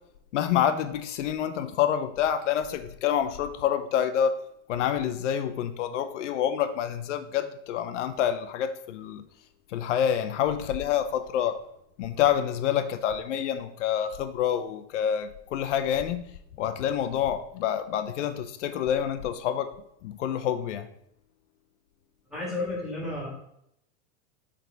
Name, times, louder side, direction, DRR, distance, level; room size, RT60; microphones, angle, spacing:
voice 1, 0.3-4.4 4.7-9.3 9.7-11.6 12.0-16.2 16.6-19.7 20.0-20.9, left 9 dB, 85° left, 10 dB, 0.7 m, -27 dB
voice 2, 22.3-23.3, left 2 dB, ahead, -5 dB, 2.6 m, -32 dB
9.4 x 3.7 x 3.9 m, 0.75 s
supercardioid pair, 160°, 35 cm